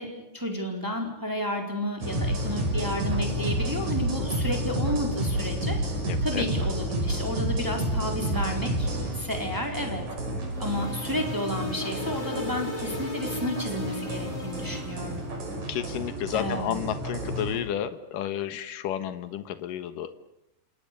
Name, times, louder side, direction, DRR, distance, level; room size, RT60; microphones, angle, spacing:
voice 1, 0.0-5.8 6.2-10.0 10.6-15.2 16.3-16.8, equal, 5° right, 2 dB, 4.1 m, -32 dB
sound 1, 2.0-17.6, right 1 dB, 55° right, 7.3 m, -30 dB
voice 2, 6.0-6.4 15.7-20.1, left 10 dB, 70° left, 10 dB, 3.0 m, -31 dB
sound 2, 10.5-15.3, left 2 dB, 20° left, 6.0 m, -37 dB
29.0 x 28.0 x 7.0 m, 0.84 s
omnidirectional pair, 4.1 m